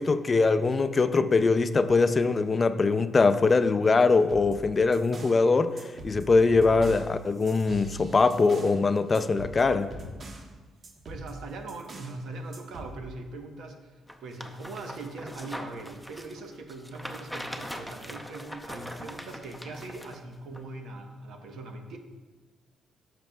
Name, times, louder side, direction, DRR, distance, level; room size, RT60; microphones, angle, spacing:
voice 1, 0.0-9.9, left 4 dB, 30° left, 11 dB, 0.4 m, -22 dB
sound 1, 4.2-5.4 5.8-8.8 9.1-10.5 10.8-12.2 12.5-13.0, right 1 dB, 45° right, 1.1 m, -43 dB
voice 2, 11.0-13.9 14.2-22.0, right 2 dB, 80° right, 4 dB, 1.0 m, -41 dB
sound 2, 14.1-20.2 20.5-20.6, equal, ahead, 0.6 m, -41 dB
12.0 x 6.0 x 2.3 m, 1.3 s
cardioid pair, 90°, 0 cm